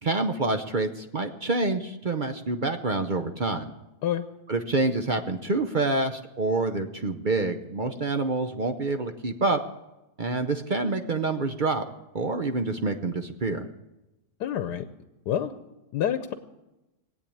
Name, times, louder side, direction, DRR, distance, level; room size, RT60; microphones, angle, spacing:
voice 1, 0.0-3.7 4.5-9.6 10.2-11.8 12.1-13.7, right 3 dB, 45° right, 7 dB, 0.6 m, -27 dB
voice 2, 14.4-14.8 15.3-15.5 15.9-16.3, left 10 dB, 90° left, 10 dB, 1.3 m, -27 dB
19.5 x 8.5 x 8.7 m, 1.0 s
omnidirectional pair, 1.7 m